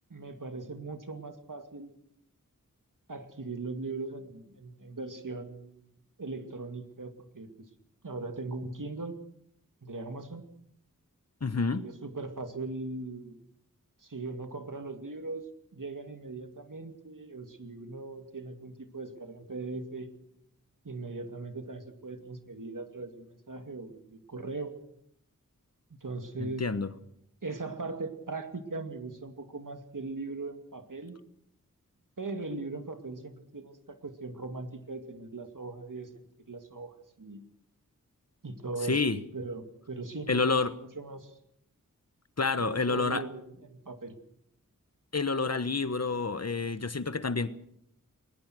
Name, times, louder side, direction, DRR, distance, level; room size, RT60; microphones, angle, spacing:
voice 1, 0.1-1.9 3.1-5.9 6.2-7.7 8.0-9.2 9.8-10.4 11.7-13.4 14.0-15.5 15.7-20.1 20.8-24.7 26.0-26.7 27.4-31.2 32.2-37.4 38.4-39.0 39.3-40.6 41.0-41.3 42.6-44.2, right 3 dB, 70° right, 2.5 m, -39 dB
voice 2, 11.4-11.8 26.4-26.9 38.9-39.2 40.3-40.7 42.4-43.2 45.1-47.5, left 4 dB, 50° left, 1.2 m, -28 dB
21.5 x 20.5 x 6.3 m
wide cardioid pair, 50°, 33 cm